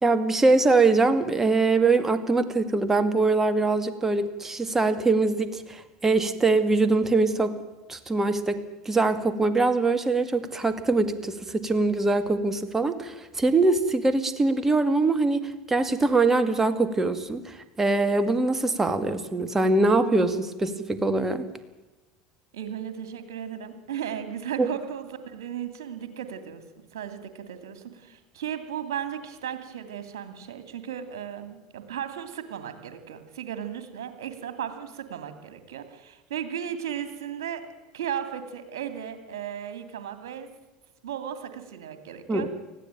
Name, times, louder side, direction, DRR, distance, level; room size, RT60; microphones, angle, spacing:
voice 1, 0.0-7.6 7.9-21.5 24.6-24.7 42.3-42.5, right 3 dB, 15° right, 10 dB, 2.1 m, -23 dB
voice 2, 22.5-26.6 26.9-37.6 37.9-40.5 41.0-42.5, right 9 dB, 75° right, 9 dB, 2.5 m, -35 dB
19.5 x 15.0 x 9.1 m, 1.2 s
hypercardioid pair, 80°, 2 cm